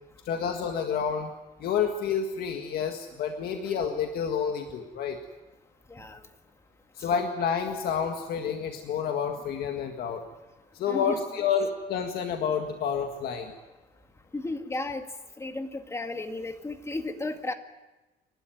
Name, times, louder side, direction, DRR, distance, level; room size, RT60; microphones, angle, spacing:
voice 1, 0.3-1.3 1.6-5.2 7.0-10.2 10.7-13.5, left 7 dB, 65° left, 4 dB, 1.8 m, -29 dB
voice 2, 5.9-6.2 7.0-7.1 10.9-11.5 14.3-15.1 15.4-17.5, left 2 dB, 15° left, 6 dB, 2.1 m, -34 dB
29.0 x 12.5 x 9.3 m, 1.1 s
cardioid pair, 110°, 17 cm